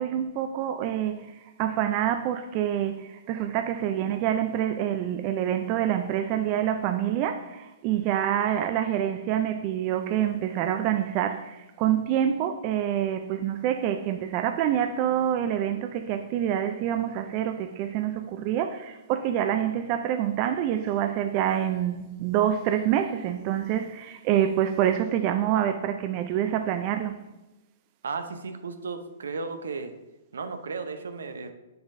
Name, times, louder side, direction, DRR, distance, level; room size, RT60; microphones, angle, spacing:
voice 1, 0.0-27.2, right 10 dB, 40° right, 0.4 m, -26 dB
voice 2, 28.0-29.9 30.3-31.5, right 4 dB, 75° right, 0.7 m, -34 dB
8.0 x 6.7 x 2.7 m
hypercardioid pair, 120°, 0 cm